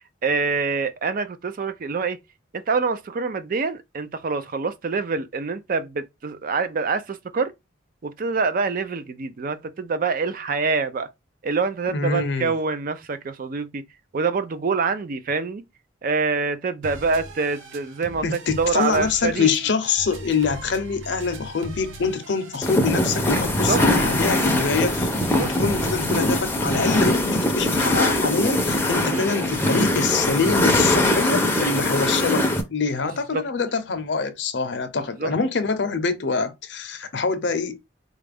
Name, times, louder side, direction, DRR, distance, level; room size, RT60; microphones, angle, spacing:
voice 1, 0.2-2.2 2.5-7.5 8.0-11.1 11.4-13.8 14.1-15.6 16.0-19.5 23.6-23.8 25.4-25.5 29.1-29.3 33.3-33.4 35.0-35.3, right 4 dB, 45° right, 0.4 m, -25 dB
voice 2, 11.9-12.5 18.2-25.1 25.4-37.9, left 4 dB, 60° left, 0.6 m, -25 dB
sound 1, 16.8-26.4, right 1 dB, 85° right, 0.8 m, -40 dB
sound 2, 22.6-32.6, left 1 dB, 10° left, 0.6 m, -22 dB
4.2 x 2.4 x 3.3 m
head